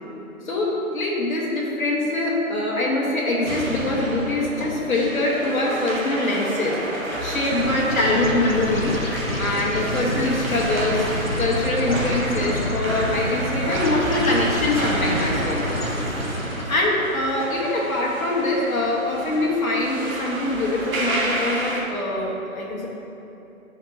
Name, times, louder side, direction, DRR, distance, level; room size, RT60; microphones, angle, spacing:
voice 1, 0.4-6.8 7.1-8.9 9.4-15.6 16.7-22.9, left 2 dB, 70° left, -4 dB, 1.4 m, -23 dB
sound 1, 3.4-21.8, right 1 dB, 70° right, 1.2 m, -31 dB
sound 2, 7.5-16.9, left 1 dB, 45° left, 0.5 m, -28 dB
sound 3, 11.3-16.0, equal, 35° right, 0.8 m, -35 dB
9.6 x 4.3 x 2.8 m, 2.9 s
hypercardioid pair, 175°, 43 cm